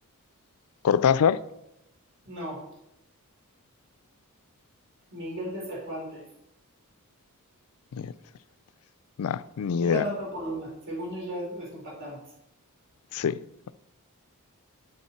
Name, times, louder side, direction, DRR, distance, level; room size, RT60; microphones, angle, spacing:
voice 1, 0.8-1.4 8.0-8.1 9.2-10.0 13.1-13.4, left 7 dB, 75° left, 0.4 m, -24 dB
voice 2, 2.3-2.6 5.1-6.2 9.8-12.2, equal, 60° right, 3.8 m, -35 dB
8.4 x 6.4 x 4.3 m
head